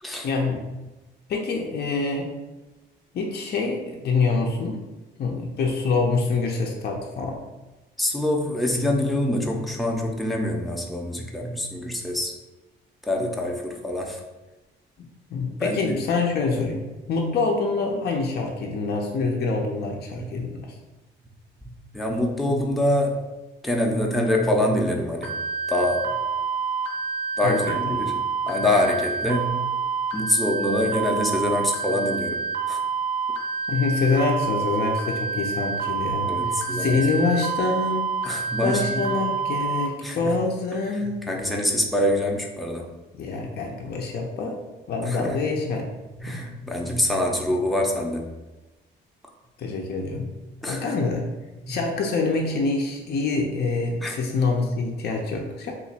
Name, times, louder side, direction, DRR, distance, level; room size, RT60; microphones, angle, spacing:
voice 1, 0.2-0.6 1.3-2.4 3.1-4.8 5.2-7.4 15.3-20.6 27.4-27.8 33.7-41.3 43.1-44.6 44.9-45.8 46.3-46.4 49.6-50.3 50.7-51.2 51.7-55.7, left 4 dB, 55° left, 1 dB, 0.5 m, -26 dB
voice 2, 8.0-12.3 13.0-14.2 15.6-16.0 20.2-20.3 21.6-23.2 23.6-25.3 25.7-26.2 27.4-28.2 28.5-29.6 30.1-32.4 32.7-32.8 36.3-37.0 38.2-39.2 40.0-40.4 41.0-42.9 45.0-45.4 46.2-48.3 50.6-50.8 51.6-51.8 54.0-54.2, left 1 dB, ahead, 0 dB, 0.5 m, -25 dB
sound 1, 25.2-39.9, right 5 dB, 65° right, 0.7 m, -28 dB
2.8 x 2.5 x 4.1 m, 1.1 s
cardioid pair, 90°, 20 cm